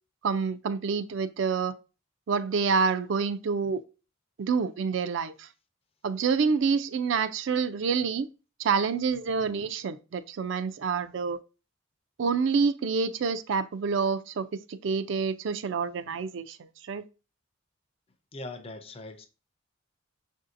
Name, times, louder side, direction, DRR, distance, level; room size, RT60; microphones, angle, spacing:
voice 1, 0.2-1.7 2.3-3.8 4.4-5.5 6.0-8.3 8.6-11.4 12.2-17.1, right 5 dB, 65° right, 0.4 m, -27 dB
voice 2, 18.3-19.3, left 2 dB, 30° left, 0.5 m, -40 dB
6.2 x 2.7 x 2.5 m
head